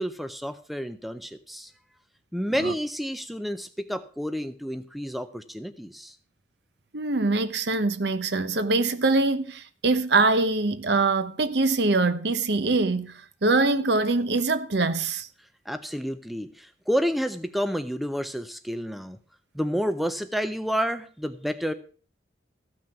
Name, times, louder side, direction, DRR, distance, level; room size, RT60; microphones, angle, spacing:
voice 1, 0.0-1.7 2.3-6.2 15.7-19.2 19.5-21.7, equal, ahead, 0.5 m, -30 dB
voice 2, 6.9-15.3, right 3 dB, 60° right, 0.9 m, -23 dB
14.5 x 6.1 x 5.8 m
head